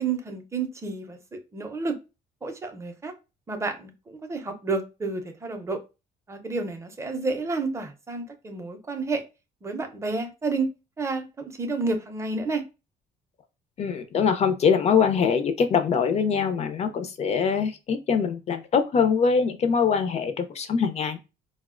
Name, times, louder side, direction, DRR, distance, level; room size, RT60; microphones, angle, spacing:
voice 1, 0.0-2.0 2.4-3.1 3.5-5.8 6.3-9.2 9.6-10.7 11.0-12.6, right 3 dB, 15° right, 6 dB, 0.5 m, -30 dB
voice 2, 13.8-21.2, left 6 dB, 40° left, 8 dB, 0.4 m, -23 dB
4.1 x 2.1 x 2.3 m, 0.29 s
cardioid pair, 110°, 17 cm